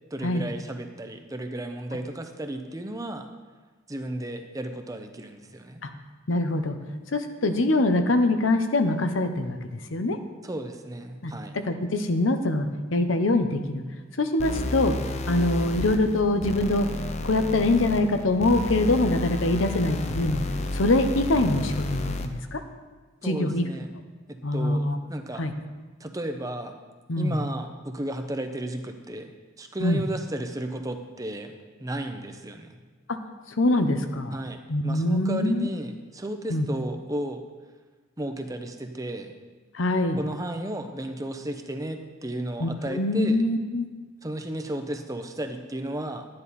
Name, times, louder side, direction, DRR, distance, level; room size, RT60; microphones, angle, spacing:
voice 1, 0.1-3.3 3.9-5.8 10.4-11.6 23.2-23.9 24.3-25.4 26.0-26.8 27.2-31.5 31.8-32.8 34.3-37.4 38.2-39.3 40.2-43.4 44.2-46.3, right 1 dB, 15° right, 6 dB, 0.7 m, -34 dB
voice 2, 6.3-6.8 7.1-10.2 11.2-13.8 14.2-15.0 15.3-16.9 17.2-20.4 20.7-22.6 23.2-23.6 24.4-25.0 25.4-25.5 27.1-27.4 29.8-30.0 33.1-33.2 33.6-34.4 34.7-35.7 36.5-36.7 39.7-40.2 42.6-43.9, left 2 dB, 80° left, 7 dB, 0.8 m, -24 dB
sound 1, 14.4-22.4, left 2 dB, 35° left, 0.6 m, -31 dB
11.5 x 9.7 x 4.1 m, 1.3 s
head